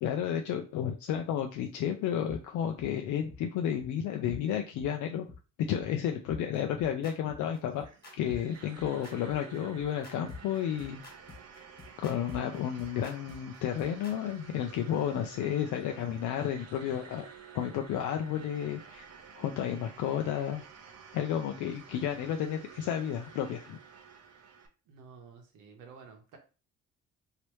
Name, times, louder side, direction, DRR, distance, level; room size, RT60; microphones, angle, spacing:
voice 1, 0.0-5.2 5.6-7.9 8.1-11.0 12.0-17.3 17.5-19.0 19.4-20.6 21.1-23.8, left 9 dB, 80° left, 4 dB, 0.5 m, -32 dB
sound 1, 2.3-2.4 2.8-2.9 3.3-3.4 3.8-3.9 4.3-4.4 4.8-4.9 5.3-5.4 5.8-5.9 6.3-14.1, left 4 dB, 30° left, 1.4 m, -45 dB
sound 2, 7.7-24.7, right 6 dB, 55° right, 0.8 m, -51 dB
voice 2, 24.9-26.4, right 5 dB, 85° right, 3 dB, 1.1 m, -52 dB
3.2 x 2.8 x 3.0 m, 0.34 s
cardioid pair, 90°, 30 cm